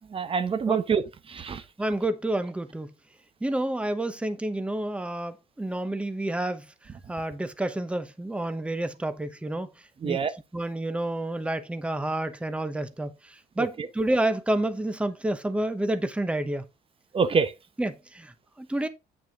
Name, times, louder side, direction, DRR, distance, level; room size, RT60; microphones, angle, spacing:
voice 1, 0.1-1.0 1.3-1.6 10.0-10.3 13.6-13.7 17.1-17.5, right 6 dB, 35° right, 1.0 m, -25 dB
voice 2, 1.8-2.9 3.4-6.7 7.1-9.7 10.0-10.2 10.5-16.6 17.8-18.9, right 1 dB, 5° right, 0.9 m, -29 dB
8.4 x 6.2 x 3.7 m
cardioid pair, 110°, 17 cm